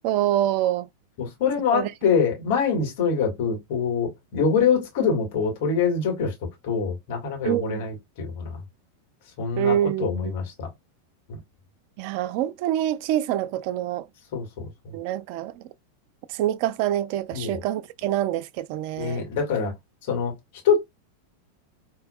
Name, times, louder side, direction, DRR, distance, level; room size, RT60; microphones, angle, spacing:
voice 1, 0.0-0.9 1.7-1.9 7.4-7.9 9.6-10.3 12.0-14.1 14.9-15.6 16.3-19.3, right 12 dB, 45° right, 0.4 m, -26 dB
voice 2, 1.2-6.3 6.6-8.6 9.4-10.7 14.3-14.6 17.3-17.6 19.0-19.7 20.1-20.3 20.6-20.8, left 6 dB, 50° left, 2.2 m, -24 dB
4.5 x 3.0 x 2.4 m
figure-of-eight pair, 90°, 0 cm